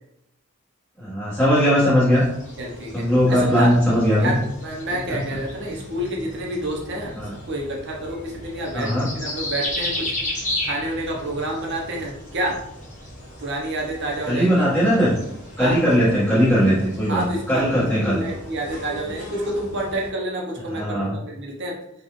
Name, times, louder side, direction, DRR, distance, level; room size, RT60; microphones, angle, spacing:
voice 1, 1.0-2.2 2.9-4.3 7.2-7.3 8.7-9.0 14.3-15.1 15.6-17.2 17.5-18.2 20.7-21.1, equal, ahead, -14 dB, 1.5 m, -19 dB
sound 1, 2.1-20.1, left 1 dB, 35° left, 1.0 m, -35 dB
voice 2, 2.6-3.7 4.2-7.1 7.5-10.1 10.6-12.6 13.4-14.7 15.6-15.8 17.1-21.8, right 1 dB, 55° right, -1 dB, 0.8 m, -29 dB
4.2 x 2.4 x 3.0 m, 0.81 s
head